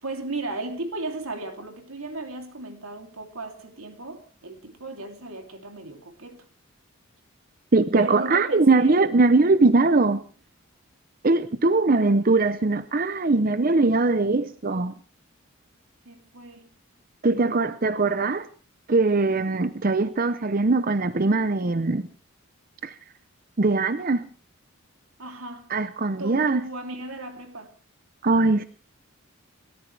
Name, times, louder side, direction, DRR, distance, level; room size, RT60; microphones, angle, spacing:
voice 1, 0.0-6.5 7.9-9.0 11.9-12.0 16.0-16.7 25.2-25.7 26.2-27.7, right 2 dB, 90° right, 3.1 m, -36 dB
voice 2, 7.7-10.2 11.2-14.9 17.2-18.5 18.9-22.1 22.8-22.9 23.6-24.2 25.7-26.6 28.2-28.6, right 3 dB, 40° right, 0.7 m, -21 dB
29.0 x 13.5 x 3.4 m
head